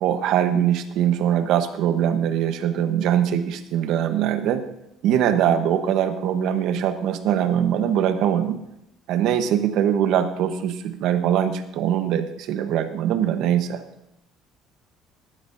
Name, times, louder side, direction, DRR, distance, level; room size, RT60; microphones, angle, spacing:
voice 1, 0.0-4.6 5.0-8.6 9.1-13.8, right 9 dB, 55° right, 8 dB, 1.0 m, -22 dB
19.5 x 11.5 x 2.6 m, 0.83 s
cardioid pair, 180°, 0 cm